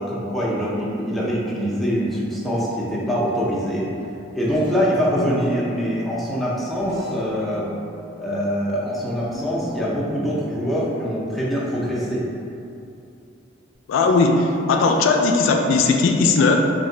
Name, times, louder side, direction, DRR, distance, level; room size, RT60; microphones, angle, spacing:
voice 1, 0.0-3.9 4.3-7.7 8.2-12.2, equal, ahead, -7 dB, 0.5 m, -24 dB
Guitar, 4.0-13.8, equal, 80° right, 1.5 m, -41 dB
voice 2, 13.9-16.6, left 4 dB, 90° left, 3 dB, 0.3 m, -18 dB
3.1 x 2.5 x 3.7 m, 2.7 s
head